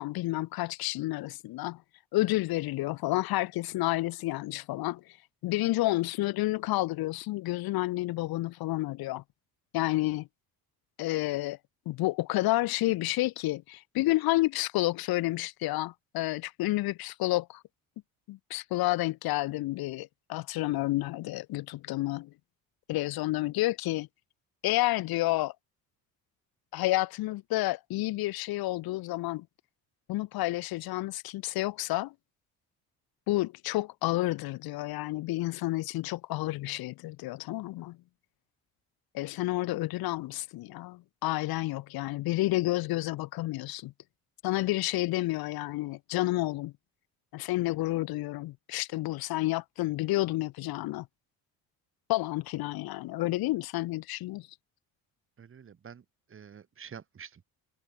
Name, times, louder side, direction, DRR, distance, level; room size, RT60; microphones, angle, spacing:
voice 1, 0.0-1.8 2.1-5.0 5.4-9.2 9.7-10.3 11.0-11.6 11.9-17.6 18.3-22.3 22.9-24.1 24.6-25.5 26.7-29.4 30.1-32.1 33.3-38.0 39.1-43.9 44.4-46.7 47.3-51.1 52.1-54.5, left 18 dB, 75° left, 1.2 m, -30 dB
voice 2, 55.4-56.0 56.3-57.4, right 7 dB, 35° right, 1.5 m, -48 dB
cardioid pair, 90°, 37 cm